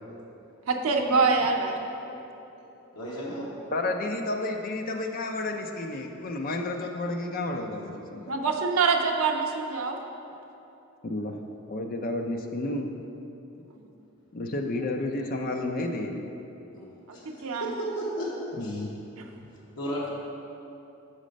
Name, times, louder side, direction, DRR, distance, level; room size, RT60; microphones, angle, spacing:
voice 1, 0.7-1.8 8.3-10.0 13.8-13.9 17.1-17.7 19.2-19.3, right 4 dB, 80° right, 3 dB, 0.6 m, -25 dB
voice 2, 2.9-3.5 16.7-18.8 19.3-20.1, equal, 85° left, -5 dB, 1.0 m, -35 dB
voice 3, 3.7-8.3 11.0-11.3 11.7-12.9 14.3-16.2 18.5-18.9, left 2 dB, 40° left, 4 dB, 0.5 m, -31 dB
6.5 x 4.1 x 5.1 m, 2.9 s
head